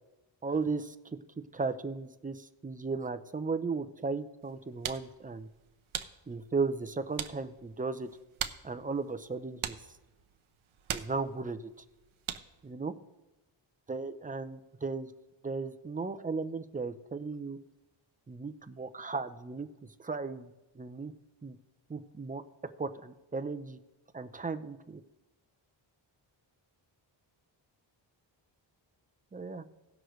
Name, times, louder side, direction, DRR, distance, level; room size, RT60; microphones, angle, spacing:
voice 1, 0.4-1.0 1.5-5.5 6.3-8.1 8.6-9.7 10.9-11.7 12.6-12.9 13.9-15.1 15.4-17.6 18.3-19.7 20.0-21.1 21.4-21.6 21.9-22.4 22.8-23.8 24.1-25.0 29.3-29.6, right 4 dB, 20° right, 10 dB, 0.5 m, -35 dB
sound 1, 4.4-12.7, right 9 dB, 85° right, 0.7 m, -43 dB
17.5 x 6.4 x 3.1 m, 1.0 s
wide cardioid pair, 95°, 47 cm